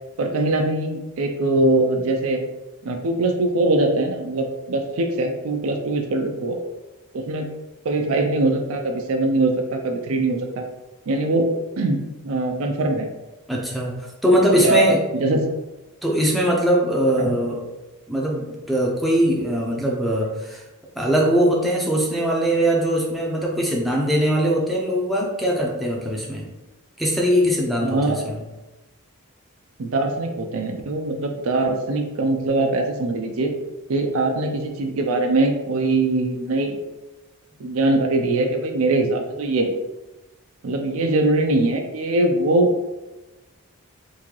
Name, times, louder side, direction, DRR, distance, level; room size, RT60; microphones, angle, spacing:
voice 1, 0.2-2.4 2.8-6.6 7.1-7.5 7.8-10.6 11.1-13.1 14.6-14.9 15.1-15.4 17.2-17.3 27.8-28.2 29.8-33.5 33.9-36.8 37.6-39.7 40.6-42.7, right 2 dB, 65° right, 4 dB, 0.5 m, -22 dB
voice 2, 13.5-14.0 14.2-15.0 16.0-17.6 18.1-20.6 21.0-26.5 27.0-28.4, equal, ahead, -2 dB, 0.5 m, -21 dB
3.7 x 2.7 x 3.1 m, 1.1 s
head